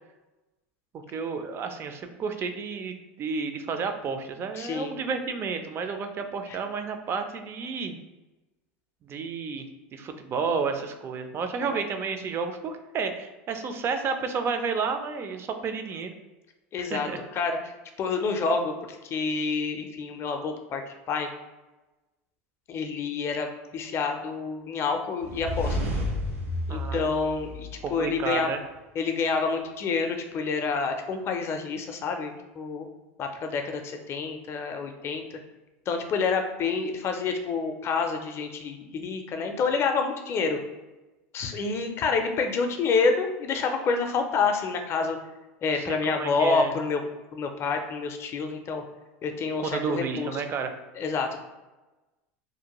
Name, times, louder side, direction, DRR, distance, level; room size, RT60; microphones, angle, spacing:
voice 1, 1.1-8.0 9.0-16.1 16.8-17.2 26.7-27.1 27.8-28.6 45.7-46.7 49.6-50.7, right 5 dB, 35° right, 7 dB, 0.3 m, -31 dB
voice 2, 4.5-4.9 6.5-6.6 11.6-11.8 16.7-17.7 18.0-20.8 21.1-21.3 22.7-25.8 26.7-28.5 29.0-32.9 33.2-35.4 35.9-40.6 41.3-45.2 45.6-47.0 47.3-48.8 49.2-50.4 51.0-51.4, left 4 dB, 35° left, 5 dB, 0.4 m, -28 dB
sound 1, 25.2-28.2, left 1 dB, 90° right, 0.7 m, -31 dB
2.6 x 2.2 x 2.9 m, 1.1 s
supercardioid pair, 110°, 7 cm